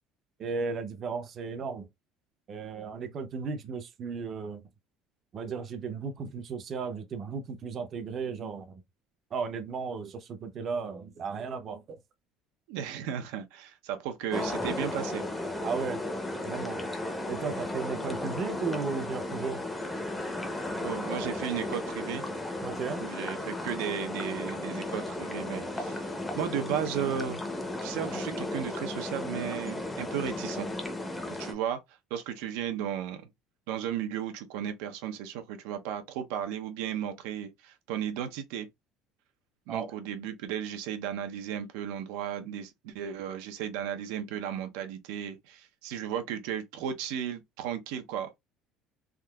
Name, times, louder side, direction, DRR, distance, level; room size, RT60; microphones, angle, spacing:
voice 1, 0.4-1.9 2.5-4.6 5.3-8.8 9.3-12.0 15.6-16.0 16.4-16.9 17.3-19.6 22.6-23.0 39.7-39.9, right 5 dB, 35° right, 0.5 m, -35 dB
voice 2, 12.7-15.2 20.8-22.2 23.0-26.0 26.4-27.4 27.8-30.7 31.4-31.8 32.1-33.2 33.7-38.7 39.7-48.4, right 9 dB, 90° right, 0.6 m, -35 dB
sound 1, 14.3-31.5, left 1 dB, 10° left, 0.6 m, -35 dB
3.6 x 2.7 x 2.2 m
cardioid pair, 150°, 0 cm